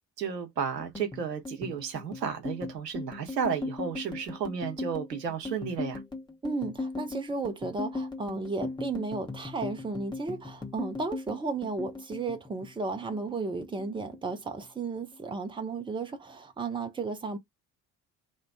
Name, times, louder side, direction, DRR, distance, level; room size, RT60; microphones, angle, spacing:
voice 1, 0.2-6.0, right 7 dB, 85° right, 0.7 m, -33 dB
sound 1, 0.8-13.4 13.6-14.7 15.0-15.3 15.6-16.3, left 3 dB, 10° left, 1.1 m, -38 dB
voice 2, 6.4-17.4, right 3 dB, 10° right, 0.7 m, -34 dB
2.5 x 2.2 x 3.4 m
figure-of-eight pair, 50°, 48 cm